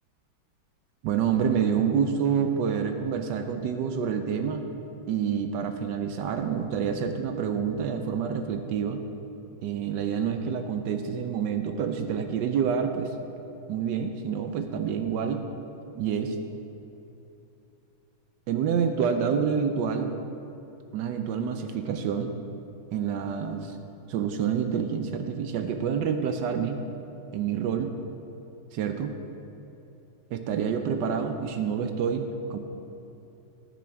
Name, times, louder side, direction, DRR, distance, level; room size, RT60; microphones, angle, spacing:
voice 1, 1.0-4.6 5.1-9.0 9.6-13.1 13.7-15.4 16.0-16.4 18.5-20.1 20.9-22.3 22.9-23.7 24.1-26.8 27.3-27.9 28.7-29.1 30.3-32.6, right 7 dB, 75° right, 7 dB, 1.1 m, -27 dB
15.0 x 6.0 x 3.5 m, 3.0 s
omnidirectional pair, 2.2 m